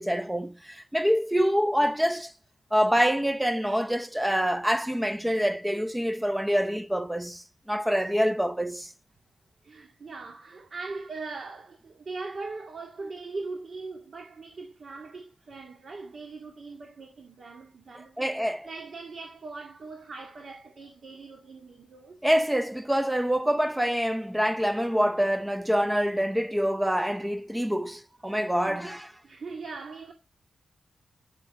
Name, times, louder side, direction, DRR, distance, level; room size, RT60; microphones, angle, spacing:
voice 1, 0.0-2.3 2.7-8.9 18.2-18.7 22.2-29.1, equal, 5° right, 0.6 m, -26 dB
voice 2, 9.6-18.3 18.6-22.2 28.7-28.9 29.2-30.1, right 3 dB, 60° right, 2.0 m, -40 dB
12.5 x 9.8 x 3.1 m
cardioid pair, 75°, 0 cm